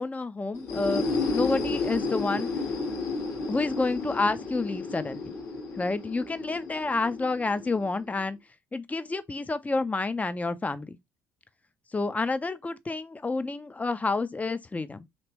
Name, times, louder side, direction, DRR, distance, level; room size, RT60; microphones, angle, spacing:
voice 1, 0.0-2.5 3.5-5.3 5.8-8.4 8.7-11.0 11.9-15.1, left 3 dB, 20° left, 0.5 m, -29 dB
sound 1, 0.5-8.2, left 3 dB, 50° left, 1.3 m, -32 dB
3.3 x 2.9 x 2.9 m
hypercardioid pair, 50°, 8 cm